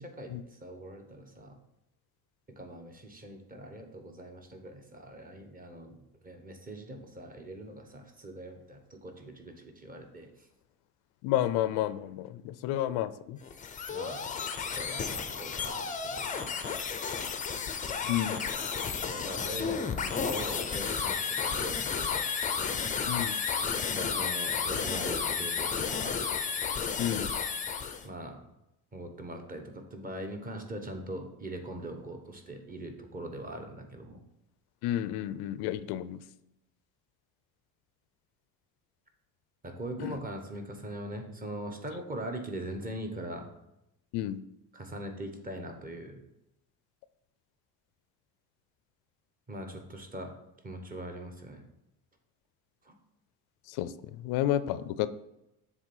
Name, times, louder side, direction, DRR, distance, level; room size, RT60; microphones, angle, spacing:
voice 1, 0.0-1.6 2.6-6.0 6.2-10.3 13.9-14.3 14.7-16.5 19.1-21.1 21.4-22.2 23.9-26.2 28.0-28.4 28.9-34.2 39.6-43.5 44.7-46.2 49.5-50.3 50.6-51.6 52.8-52.9, right 1 dB, 20° right, 4 dB, 1.0 m, -41 dB
voice 2, 11.2-13.4 18.1-18.4 23.1-23.4 27.0-27.3 34.8-36.2 40.0-40.2 44.1-44.4 53.7-55.1, left 12 dB, 75° left, 15 dB, 0.5 m, -31 dB
sound 1, 13.4-28.1, left 6 dB, 20° left, 0.5 m, -32 dB
7.4 x 3.4 x 5.4 m, 0.87 s
cardioid pair, 130°, 39 cm